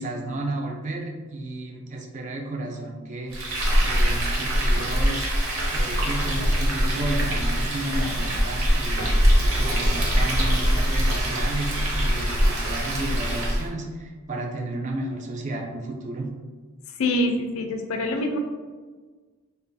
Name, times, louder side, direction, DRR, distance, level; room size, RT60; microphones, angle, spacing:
voice 1, 0.0-3.6 3.8-5.3 5.7-9.1 9.4-16.3, right 2 dB, 35° right, 1 dB, 0.3 m, -32 dB
Frying (food), 3.3-13.7, equal, 75° right, 0.7 m, -23 dB
voice 2, 17.0-18.4, left 1 dB, 75° left, 4 dB, 0.3 m, -25 dB
2.4 x 2.2 x 2.5 m, 1.4 s
head